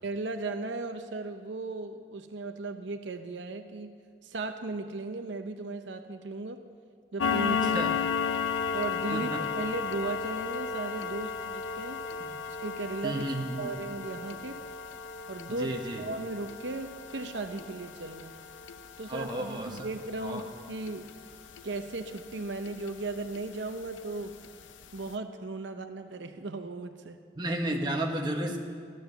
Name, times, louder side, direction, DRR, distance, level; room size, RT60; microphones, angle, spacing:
voice 1, 0.0-4.0 4.2-6.6 7.1-7.9 8.7-12.1 12.6-14.6 15.3-18.3 19.0-21.1 21.6-24.3 24.9-27.2, right 3 dB, 80° right, 7 dB, 0.7 m, -36 dB
sound 1, 7.2-22.3 22.7-22.9 23.3-23.4 23.9-24.0 24.4-24.5 24.8-25.0, left 6 dB, 90° left, 0.6 m, -34 dB
voice 2, 13.0-13.7 15.5-16.0 19.1-19.9 20.2-20.4 27.4-28.6, right 1 dB, 25° right, 0 dB, 1.3 m, -33 dB
14.5 x 11.0 x 6.9 m, 2.1 s
head